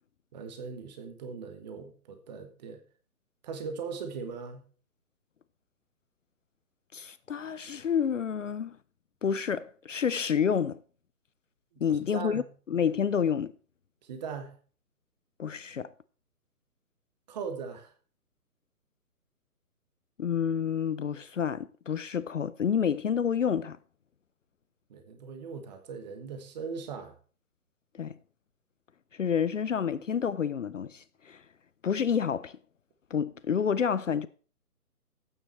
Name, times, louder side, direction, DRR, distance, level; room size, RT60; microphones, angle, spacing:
voice 1, 0.3-2.8 3.4-4.6 12.1-12.5 14.0-14.6 17.3-17.9 24.9-27.1, right 5 dB, 30° right, 1.3 m, -39 dB
voice 2, 6.9-8.8 9.2-10.8 11.8-12.4 12.7-13.5 15.4-15.9 20.2-23.8 27.9-28.1 29.1-31.4 31.8-32.6 33.1-34.3, left 7 dB, 55° left, 0.5 m, -29 dB
12.5 x 8.9 x 3.1 m
figure-of-eight pair, 140°, 46 cm